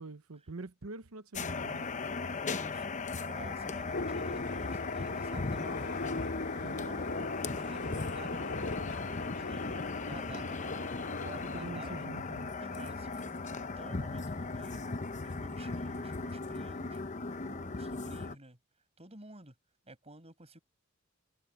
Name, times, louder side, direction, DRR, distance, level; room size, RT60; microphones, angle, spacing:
voice 1, 0.0-1.9 6.5-6.9 11.5-12.5, right 3 dB, 90° right, 1.0 m, -45 dB
sound 1, 1.3-18.4, left 3 dB, 35° left, 0.8 m, -37 dB
voice 2, 2.5-2.8 3.1-6.0 6.6-7.1 7.5-9.6 10.0-12.1 12.6-14.9 15.2-17.0 17.4-18.6 19.0-19.5 19.9-20.6, right 2 dB, 30° right, 6.9 m, -52 dB
sound 2, 3.9-11.7, left 2 dB, 60° left, 2.8 m, -40 dB
head